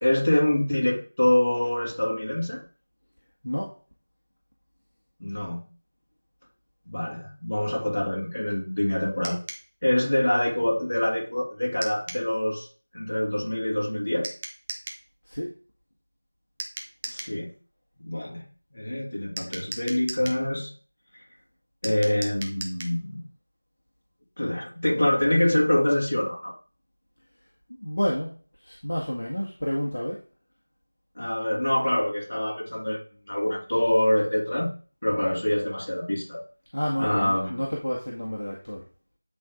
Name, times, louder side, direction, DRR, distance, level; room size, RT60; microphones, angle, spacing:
voice 1, 0.0-2.6 5.2-5.7 6.9-9.4 9.8-12.7 12.9-14.3 17.0-17.5 18.0-18.5 18.7-20.7 21.8-23.2 24.4-26.5 31.2-34.7 35.0-36.4 37.0-37.6, left 1 dB, 45° left, -3 dB, 2.8 m, -25 dB
sound 1, 9.2-9.7 11.8-12.3 14.2-15.0 16.6-17.4 19.4-20.4 21.8-23.0, right 3 dB, 10° right, 0.5 m, -37 dB
voice 2, 27.7-28.3 28.6-30.2 36.7-38.8, equal, 65° left, -3 dB, 1.8 m, -30 dB
9.5 x 3.9 x 3.7 m, 0.38 s
figure-of-eight pair, 175°, 0 cm